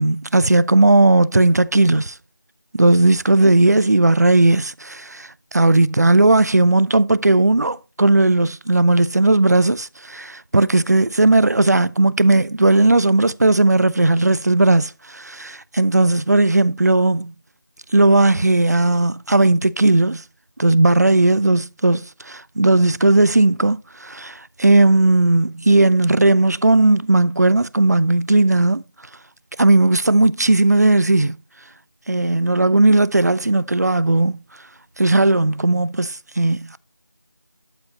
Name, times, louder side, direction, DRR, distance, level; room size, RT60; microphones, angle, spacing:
voice 1, 0.0-2.1 2.7-17.3 17.9-20.2 20.6-28.8 29.6-31.4 32.1-34.4 35.0-36.8, right 2 dB, 50° right, 0.4 m, -16 dB
12.0 x 4.9 x 2.8 m
figure-of-eight pair, 180°, 11 cm